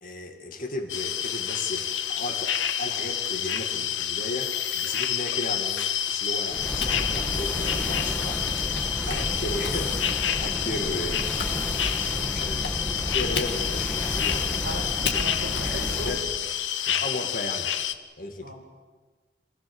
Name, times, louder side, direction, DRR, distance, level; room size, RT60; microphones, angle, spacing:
voice 1, 0.0-8.5 9.1-14.7 15.0-16.2 16.9-17.7 18.2-18.5, left 1 dB, 50° left, 4 dB, 2.4 m, -35 dB
sound 1, 0.9-17.9, left 9 dB, 90° left, 1.1 m, -29 dB
sound 2, 6.5-16.3, equal, 10° left, 1.9 m, -32 dB
Typing, 6.8-11.6 11.9-16.0, left 5 dB, 65° left, 2.1 m, -36 dB
voice 2, 14.6-16.2 18.4-18.5, equal, 70° right, 0 dB, 6.0 m, -36 dB
27.0 x 17.5 x 7.3 m, 1.4 s
head